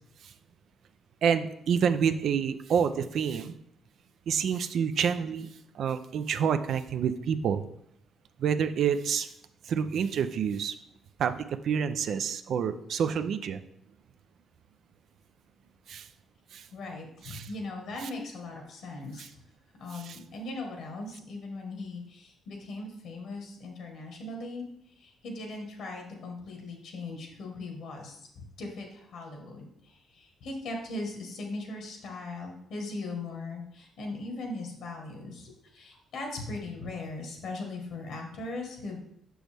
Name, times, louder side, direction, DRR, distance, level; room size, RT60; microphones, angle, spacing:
voice 1, 1.2-3.5 4.3-7.6 8.4-9.3 9.7-10.7 11.2-13.6 15.9-16.1 16.5-16.6 17.2-17.5 19.2-19.3 19.9-20.2, right 7 dB, 65° right, 10 dB, 0.4 m, -28 dB
voice 2, 16.7-19.3 19.8-24.7 25.0-39.0, left 2 dB, 75° left, 2 dB, 1.4 m, -39 dB
6.2 x 6.1 x 3.4 m, 0.73 s
cardioid pair, 90°, 0 cm